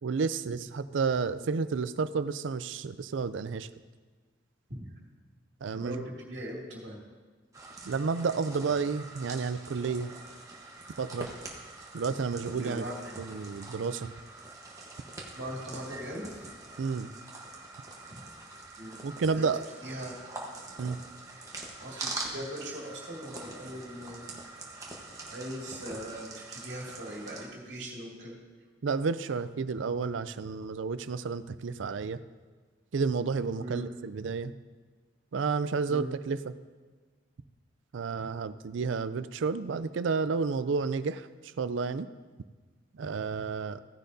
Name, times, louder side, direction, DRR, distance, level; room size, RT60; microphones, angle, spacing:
voice 1, 0.0-3.7 5.6-6.0 7.9-10.1 11.0-11.3 11.9-12.8 13.2-14.1 16.8-17.1 19.0-19.7 20.8-21.0 28.8-32.2 32.9-34.5 35.3-36.5 37.9-42.1 42.9-43.8, right 5 dB, 80° right, 14 dB, 0.4 m, -31 dB
voice 2, 5.7-7.0 12.6-13.2 15.3-16.5 18.1-18.2 18.8-19.0 19.3-19.5 19.8-20.1 21.8-24.3 25.3-28.4 33.6-33.9 35.9-36.1, equal, 60° right, -3 dB, 2.3 m, -40 dB
sound 1, 7.5-27.5, right 2 dB, 15° right, 1.2 m, -44 dB
15.0 x 10.0 x 2.7 m, 1.4 s
head